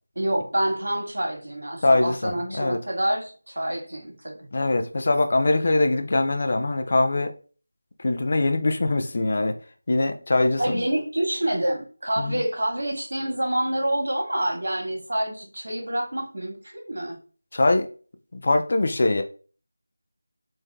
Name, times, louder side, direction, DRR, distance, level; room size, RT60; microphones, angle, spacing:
voice 1, 0.1-4.5 10.6-17.2, right 1 dB, 75° right, 1.6 m, -27 dB
voice 2, 1.8-2.8 4.5-7.3 8.0-9.6 9.9-10.8 12.2-12.4 17.5-17.9 18.3-19.2, left 2 dB, 35° left, 0.4 m, -22 dB
3.7 x 2.6 x 3.4 m
figure-of-eight pair, 175°, 0 cm